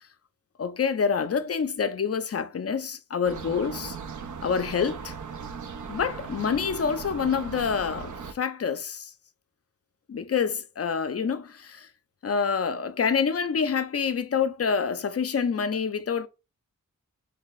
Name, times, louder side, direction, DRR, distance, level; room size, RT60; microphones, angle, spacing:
voice 1, 0.6-4.0 4.4-5.1 5.9-9.1 10.1-11.9 12.2-16.3, left 6 dB, 45° left, 0.5 m, -27 dB
sound 1, 3.2-8.3, right 5 dB, 65° right, 0.5 m, -38 dB
3.3 x 2.2 x 3.9 m
wide cardioid pair, 55°, 32 cm